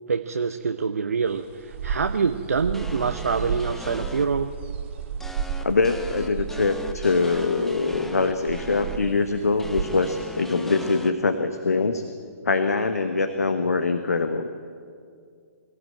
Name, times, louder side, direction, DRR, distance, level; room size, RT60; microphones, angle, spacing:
voice 1, 0.1-4.5, right 5 dB, 70° right, 8 dB, 0.8 m, -25 dB
sound 1, 1.3-10.2, right 7 dB, 50° right, 2.7 m, -34 dB
sound 2, 2.7-4.2 5.2-9.0 9.6-11.1, left 2 dB, 5° left, 1.1 m, -39 dB
voice 2, 5.6-12.0 12.4-14.5, left 3 dB, 75° left, 8 dB, 1.3 m, -23 dB
23.0 x 15.5 x 8.8 m, 2.2 s
figure-of-eight pair, 125°, 8 cm